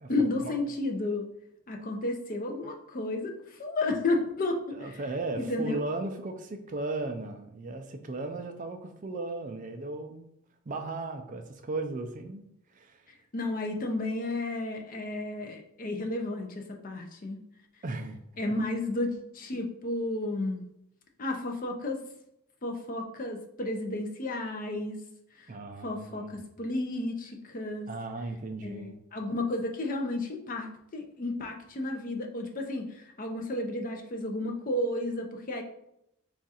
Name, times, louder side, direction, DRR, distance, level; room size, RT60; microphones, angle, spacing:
voice 1, 0.1-1.3 1.7-4.8 5.4-5.8 13.3-17.4 18.4-20.6 21.2-22.0 22.6-25.0 25.4-25.5 25.8-27.9 28.6-35.6, left 2 dB, 40° left, 2 dB, 0.5 m, -32 dB
voice 2, 4.7-10.3 10.7-12.4 12.7-13.1 17.8-18.2 18.5-18.6 25.5-26.3 27.9-29.0, right 2 dB, 35° right, 6 dB, 0.4 m, -36 dB
3.6 x 2.4 x 4.1 m, 0.78 s
head